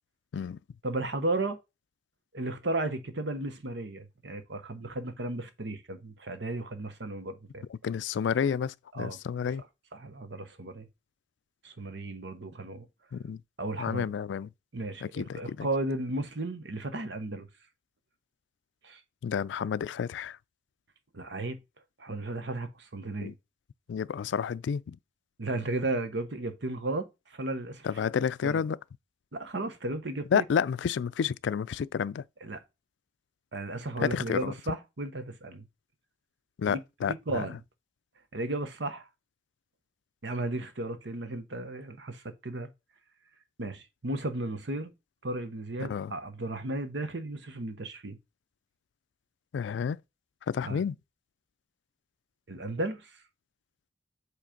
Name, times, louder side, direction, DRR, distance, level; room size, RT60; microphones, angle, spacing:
voice 1, 0.8-1.6 2.3-7.6 8.9-9.2 9.9-10.9 11.6-12.9 13.6-14.0 14.7-15.0 15.4-17.5 18.8-19.0 21.1-21.6 22.0-23.3 25.4-27.9 28.4-28.6 29.3-30.4 32.4-32.6 33.5-35.7 36.7-36.8 37.1-37.6 38.3-39.1 40.2-42.7 43.6-44.9 45.2-48.2 50.6-50.8 52.5-53.1, right 2 dB, 75° right, 1.0 m, -34 dB
voice 2, 7.8-9.6 13.1-13.4 13.8-14.5 15.0-15.7 19.2-20.4 23.2-23.3 23.9-25.0 27.8-28.8 30.3-32.2 34.0-34.5 36.6-37.5 45.8-46.1 49.5-50.0 50.5-51.0, left 7 dB, 80° left, 0.3 m, -30 dB
7.6 x 3.2 x 5.1 m
head